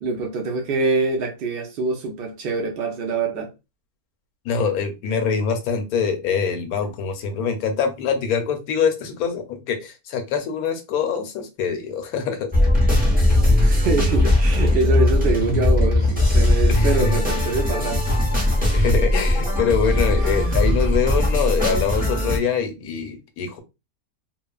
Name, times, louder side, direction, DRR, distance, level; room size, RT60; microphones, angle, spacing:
voice 1, 0.0-3.5 13.6-18.1 18.9-19.0 20.1-20.6, right 4 dB, 65° right, 0.6 m, -25 dB
voice 2, 4.4-12.5 16.7-17.2 18.7-23.6, left 6 dB, 75° left, 1.1 m, -24 dB
sound 1, 12.5-22.4, left 1 dB, 10° right, 0.5 m, -19 dB
2.9 x 2.1 x 2.3 m
omnidirectional pair, 1.6 m